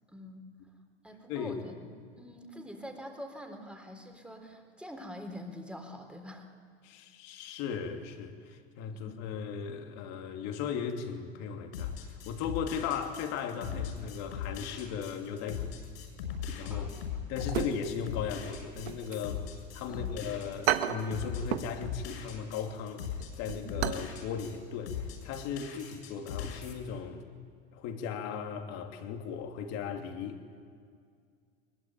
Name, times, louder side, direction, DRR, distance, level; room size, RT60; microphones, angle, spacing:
voice 1, 0.1-0.5 1.0-1.9 2.2-6.5 8.9-9.2 13.7-13.9 16.7-17.0 19.9-20.1 23.4-23.6, equal, 5° right, 4 dB, 3.8 m, -45 dB
voice 2, 1.3-1.6 6.8-15.7 16.6-16.9 17.3-27.2 27.7-30.4, left 7 dB, 50° left, 4 dB, 2.9 m, -37 dB
sound 1, 11.7-24.6 24.9-26.7, left 8 dB, 70° left, 6.4 m, -39 dB
sound 2, 17.4-18.2 18.5-19.9 20.2-20.3 20.7-21.8 22.1-22.3 22.7-24.1 24.4-24.5 25.0-25.2 25.5-25.6, right 11 dB, 70° right, 1.4 m, -33 dB
22.5 x 21.5 x 9.0 m, 2.2 s
hypercardioid pair, 95°, 33 cm